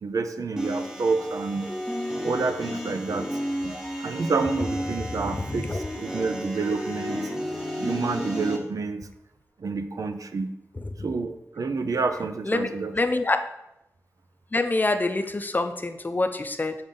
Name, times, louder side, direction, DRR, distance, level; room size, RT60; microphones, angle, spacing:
voice 1, 0.0-1.7 2.2-3.3 3.6-7.3 7.8-9.1 9.6-10.5 11.0-13.0, right 4 dB, 75° right, 9 dB, 0.5 m, -29 dB
sound 1, 0.6-8.6, equal, 10° right, 1.0 m, -32 dB
voice 2, 5.1-5.8 12.5-13.4 14.5-16.8, left 2 dB, 30° left, 8 dB, 0.5 m, -26 dB
6.8 x 3.9 x 3.7 m, 0.85 s
wide cardioid pair, 70°, 6 cm